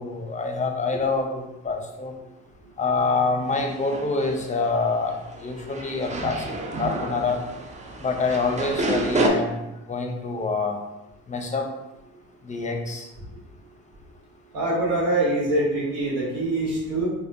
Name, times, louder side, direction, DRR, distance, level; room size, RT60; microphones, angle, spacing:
voice 1, 0.0-2.1 2.8-6.4 6.8-7.4 8.0-10.8 11.3-11.7 12.4-13.1, left 4 dB, 20° left, 3 dB, 0.6 m, -26 dB
sound 1, 3.5-9.3, right 2 dB, 20° right, 0.5 m, -30 dB
voice 2, 14.5-17.1, right 1 dB, 75° right, -5 dB, 1.4 m, -24 dB
4.1 x 2.2 x 2.7 m, 0.99 s
supercardioid pair, 70°, 36 cm